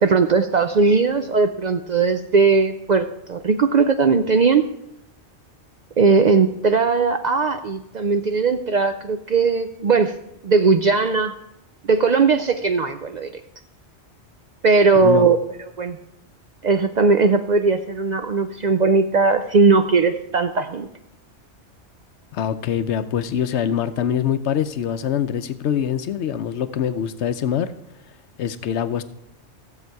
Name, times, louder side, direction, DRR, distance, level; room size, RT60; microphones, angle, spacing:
voice 1, 0.0-4.7 6.0-10.1 10.4-11.3 11.9-13.3 14.6-15.4 15.8-16.0 16.6-20.9, right 4 dB, 55° right, 8 dB, 0.5 m, -18 dB
voice 2, 22.3-27.7 28.4-29.0, left 9 dB, 75° left, 12 dB, 0.9 m, -24 dB
14.5 x 7.6 x 4.6 m, 0.83 s
omnidirectional pair, 1.2 m